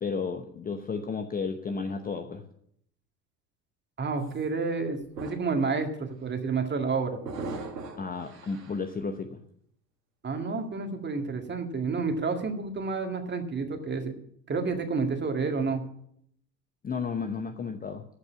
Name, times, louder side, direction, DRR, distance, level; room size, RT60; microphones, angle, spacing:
voice 1, 0.0-2.4 8.0-9.4 16.8-18.1, left 5 dB, 15° left, 6 dB, 0.8 m, -33 dB
voice 2, 4.0-7.2 10.2-14.2 14.5-15.8, right 4 dB, 20° right, 4 dB, 2.0 m, -30 dB
sound 1, 4.2-4.4 4.9-5.6 6.0-6.3 7.2-8.9, right 3 dB, 80° right, 1.9 m, -40 dB
14.5 x 5.4 x 8.4 m, 0.70 s
figure-of-eight pair, 70°, 50 cm